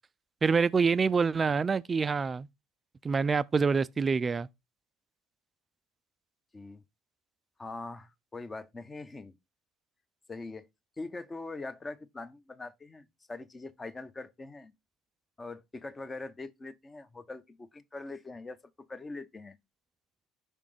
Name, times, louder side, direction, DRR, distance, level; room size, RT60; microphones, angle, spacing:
voice 1, 0.4-2.5 3.0-4.5, right 5 dB, 25° right, 0.3 m, -26 dB
voice 2, 6.5-6.8 7.6-9.4 10.3-10.7 11.0-14.7 15.4-19.6, left 3 dB, 20° left, 0.8 m, -42 dB
5.8 x 3.4 x 4.9 m
figure-of-eight pair, 60°, 0 cm